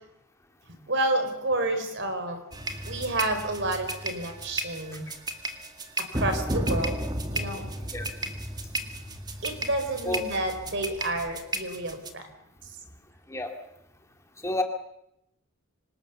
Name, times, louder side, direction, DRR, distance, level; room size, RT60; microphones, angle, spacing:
voice 1, 0.9-2.4 2.8-5.1 6.0-7.0 7.3-7.7 9.4-12.3, right 2 dB, 55° right, 7 dB, 4.6 m, -29 dB
sound 1, 2.5-12.1, right 1 dB, 20° right, 2.0 m, -33 dB
voice 2, 7.9-8.1 10.0-10.2 13.3-13.5 14.4-14.6, left 1 dB, 15° left, 3 dB, 2.3 m, -29 dB
26.5 x 26.0 x 7.1 m, 0.81 s
head